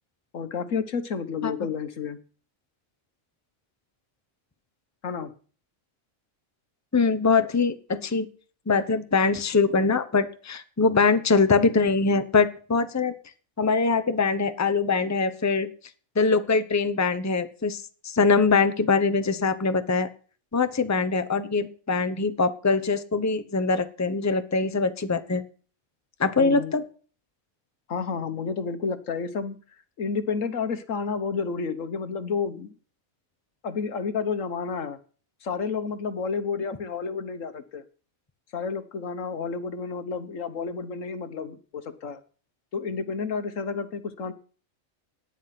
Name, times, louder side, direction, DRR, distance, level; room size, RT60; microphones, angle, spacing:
voice 1, 0.3-2.2 5.0-5.3 26.4-26.7 27.9-29.6 30.0-32.7 33.6-35.0 35.4-37.8 38.5-42.2 42.7-44.3, left 5 dB, 70° left, 11 dB, 1.5 m, -30 dB
voice 2, 6.9-8.3 8.7-13.1 13.6-15.7 16.2-20.1 20.5-25.4 26.2-26.8, left 4 dB, 15° left, 10 dB, 0.8 m, -23 dB
18.0 x 10.0 x 5.9 m, 0.41 s
omnidirectional pair, 1.4 m